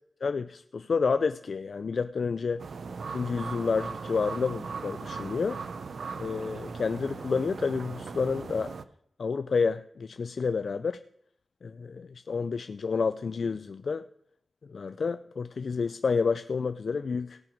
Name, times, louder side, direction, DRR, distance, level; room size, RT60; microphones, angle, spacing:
voice 1, 0.2-2.6 3.1-5.6 6.2-8.7 9.2-11.0 11.6-14.1 14.7-17.4, left 5 dB, 70° left, 0.3 m, -29 dB
sound 1, 2.6-8.8, right 5 dB, 85° right, 0.5 m, -38 dB
17.5 x 5.9 x 5.2 m
wide cardioid pair, 75°, 0 cm